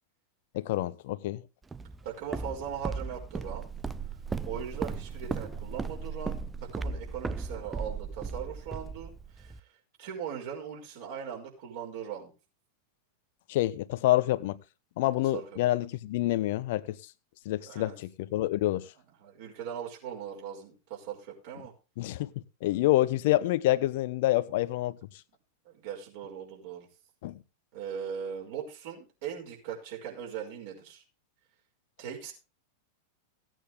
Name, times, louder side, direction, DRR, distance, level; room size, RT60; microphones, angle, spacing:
voice 1, 0.5-1.4 13.5-14.6 15.0-17.0 17.4-18.9 22.0-22.3 22.6-25.0 27.2-27.4, left 16 dB, 50° left, 0.8 m, -27 dB
Walk footsteps, 1.7-9.6, right 4 dB, 15° right, 0.6 m, -36 dB
voice 2, 2.0-3.7 4.4-9.6 10.0-12.3 15.3-15.5 17.6-18.0 19.2-21.7 25.7-26.9 27.7-31.0 32.0-32.3, right 8 dB, 50° right, 5.5 m, -39 dB
16.5 x 9.0 x 3.4 m
figure-of-eight pair, 90°, 0 cm